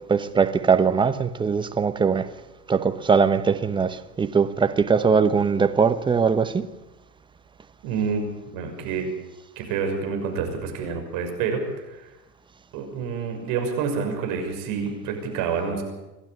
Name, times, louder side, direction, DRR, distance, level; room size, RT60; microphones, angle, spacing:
voice 1, 0.1-2.3 2.7-6.7, right 5 dB, 10° right, 1.0 m, -21 dB
voice 2, 7.8-8.2 8.5-9.1 9.6-11.6 11.9-12.0 12.7-15.8, right 6 dB, 45° right, 6.2 m, -28 dB
27.0 x 12.0 x 8.5 m
hypercardioid pair, 100°, 50 cm